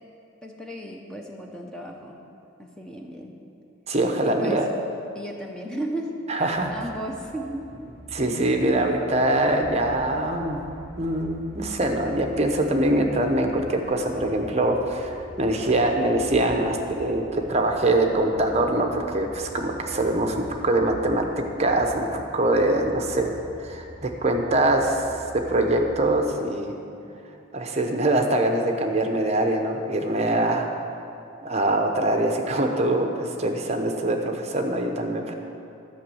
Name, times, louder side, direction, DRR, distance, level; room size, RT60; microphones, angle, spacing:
voice 1, 0.4-2.2 2.6-3.3 4.2-4.6 5.1-6.2 6.7-7.7, right 1 dB, 5° left, 0 dB, 0.8 m, -34 dB
voice 2, 3.9-4.7 6.3-6.7 8.1-10.6 11.0-23.3 23.6-25.2 25.5-26.7 27.5-30.7 31.4-35.3, right 1 dB, 35° right, 3 dB, 0.9 m, -23 dB
sound 1, 6.5-26.3, right 1 dB, 25° left, 3.2 m, -43 dB
12.0 x 6.2 x 7.8 m, 2.6 s
head